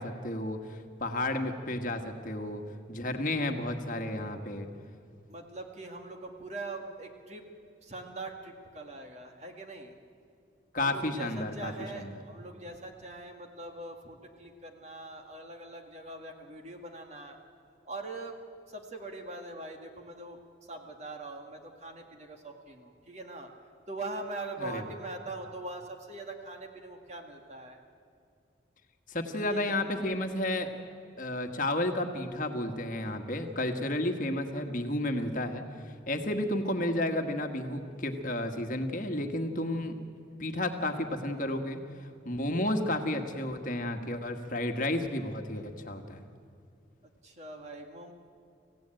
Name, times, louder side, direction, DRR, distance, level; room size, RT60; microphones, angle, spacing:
voice 1, 0.0-2.6 2.9-4.7 10.7-12.1 24.6-24.8 29.1-30.7 31.2-39.9 40.4-46.2, left 1 dB, 45° left, 5 dB, 1.5 m, -32 dB
voice 2, 5.3-7.5 7.8-9.9 10.8-17.4 17.8-18.4 18.7-20.4 20.7-23.5 23.9-27.8 29.3-30.2 47.2-48.1, right 2 dB, 35° right, 3 dB, 2.0 m, -42 dB
25.5 x 16.0 x 9.0 m, 2.4 s
head